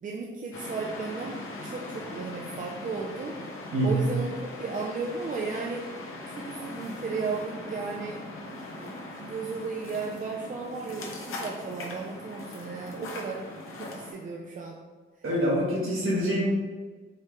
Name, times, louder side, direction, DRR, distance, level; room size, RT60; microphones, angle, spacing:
voice 1, 0.0-1.4 1.6-3.4 3.8-4.3 4.6-5.8 6.3-8.2 8.8-8.9 9.2-13.4 13.8-14.8, right 4 dB, 40° right, -2 dB, 0.4 m, -34 dB
sound 1, 0.5-14.1, left 2 dB, 85° left, 0.8 m, -40 dB
voice 2, 3.7-4.1 15.2-16.4, right 1 dB, 80° right, -5 dB, 1.5 m, -25 dB
4.6 x 3.4 x 3.0 m, 1.4 s
wide cardioid pair, 165°, 21 cm